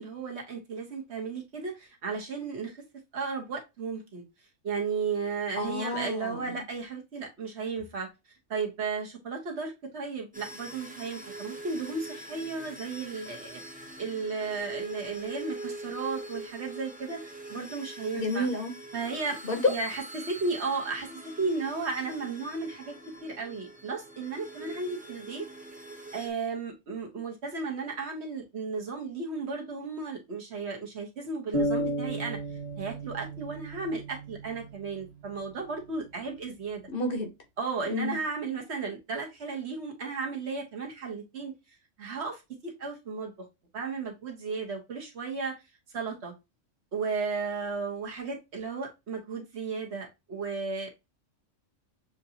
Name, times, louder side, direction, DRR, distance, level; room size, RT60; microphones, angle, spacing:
voice 1, 0.0-2.8 3.1-4.2 4.6-8.1 8.5-13.6 14.0-18.5 18.9-19.4 19.7-22.9 23.2-25.5 26.1-32.4 32.8-36.8 37.6-41.5 42.0-43.5 43.7-45.6 45.9-46.3 46.9-50.9, right 4 dB, 60° right, 1.3 m, -34 dB
voice 2, 5.6-6.6 18.1-18.7 19.4-19.7 36.9-37.3 37.9-38.2, left 2 dB, 50° left, 1.0 m, -29 dB
sound 1, 10.3-26.3, right 2 dB, 10° right, 0.6 m, -43 dB
sound 2, 31.5-35.3, right 1 dB, 30° right, 1.3 m, -33 dB
6.7 x 2.6 x 2.7 m
omnidirectional pair, 1.3 m